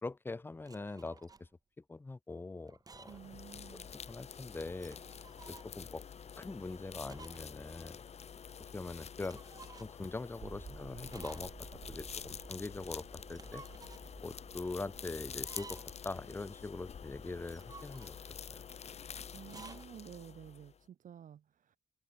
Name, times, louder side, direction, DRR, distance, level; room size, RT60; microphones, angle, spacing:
voice 1, 0.0-1.5 1.9-3.2 3.7-3.8 4.1-5.0 5.5-6.0 6.4-8.0 8.7-9.4 9.8-11.5 11.9-13.6 14.2-18.2 18.5-18.6, left 3 dB, 15° left, 0.8 m, -42 dB
sound 1, 0.6-1.5 2.7-3.3 3.7-3.8 4.7-5.7 7.1-7.5 7.8-7.9 9.2-10.1 11.1-11.8 13.2-14.1 15.3-16.1 17.4-18.4 19.4-19.9, right 4 dB, 25° right, 2.2 m, -54 dB
sound 2, 3.0-20.8, left 7 dB, 50° left, 2.5 m, -48 dB
voice 2, 3.1-3.9 19.3-21.8, right 9 dB, 70° right, 3.0 m, -52 dB
sound 3, 10.4-20.5, right 7 dB, 50° right, 1.1 m, -56 dB
wide cardioid pair, 180°, 14 cm